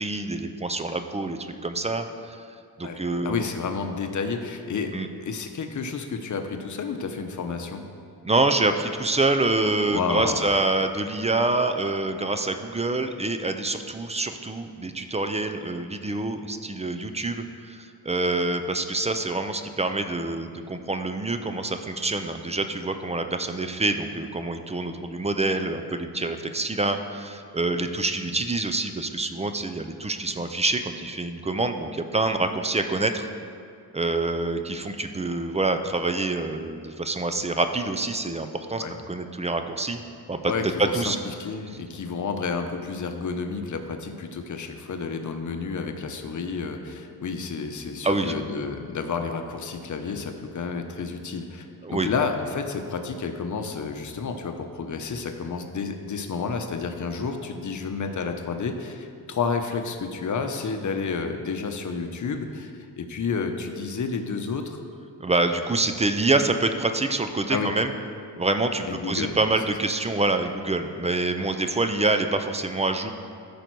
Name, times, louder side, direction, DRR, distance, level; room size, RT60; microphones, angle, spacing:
voice 1, 0.0-2.5 2.8-3.5 4.9-5.1 8.2-33.3 33.9-40.0 40.3-40.5 40.9-41.2 48.0-48.3 51.8-52.1 65.2-67.9 68.4-73.1, right 2 dB, 20° right, 7 dB, 0.4 m, -26 dB
voice 2, 2.8-4.9 5.2-7.8 9.9-10.4 38.8-39.0 40.4-41.1 41.4-62.7 63.0-64.8 67.5-67.7 68.9-69.3, left 5 dB, 50° left, 6 dB, 0.8 m, -30 dB
13.5 x 5.2 x 4.6 m, 2.3 s
wide cardioid pair, 165°, 39 cm